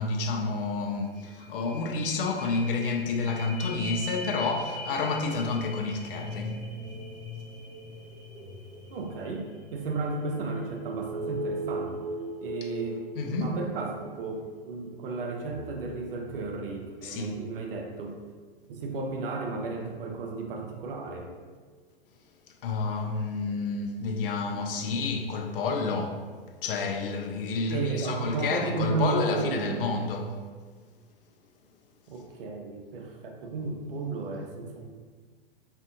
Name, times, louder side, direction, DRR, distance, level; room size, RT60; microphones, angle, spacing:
voice 1, 0.0-6.6 12.6-12.7 13.1-13.6 17.0-17.3 22.6-26.2 26.6-30.4, left 3 dB, 65° left, 0.5 m, -29 dB
sound 1, 1.1-17.0 17.5-17.6, right 1 dB, 5° right, 1.0 m, -40 dB
voice 2, 8.9-12.0 12.4-18.2 18.7-21.3 27.7-29.8 32.1-34.9, right 3 dB, 60° right, 0.7 m, -33 dB
2.7 x 2.5 x 3.6 m
figure-of-eight pair, 100°, 30 cm